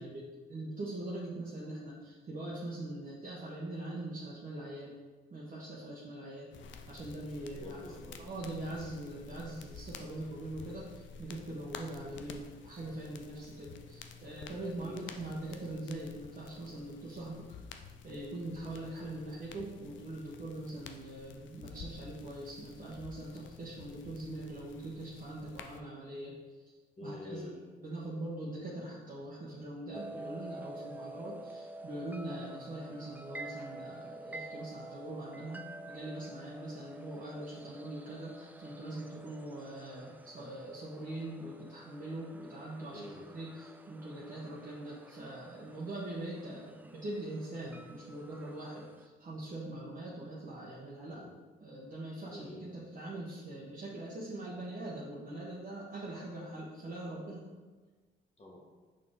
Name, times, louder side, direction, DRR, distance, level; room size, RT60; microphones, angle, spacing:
voice 1, 0.0-4.9 5.3-6.5 6.9-7.8 8.2-17.6 18.0-26.4 27.0-27.4 27.8-51.2 51.6-57.5, right 1 dB, 40° right, -6 dB, 1.2 m, -42 dB
sound 1, 6.5-25.8, left 5 dB, 70° left, 0.6 m, -51 dB
voice 2, 7.5-8.2 14.7-15.1 27.0-27.7 42.9-43.3 51.0-51.4 52.3-52.9 58.4-58.6, left 1 dB, 30° left, -2 dB, 1.6 m, -47 dB
sound 2, 29.9-49.1, right 2 dB, 10° right, 0.3 m, -49 dB
6.3 x 4.2 x 3.8 m, 1.3 s
cardioid pair, 90°, 20 cm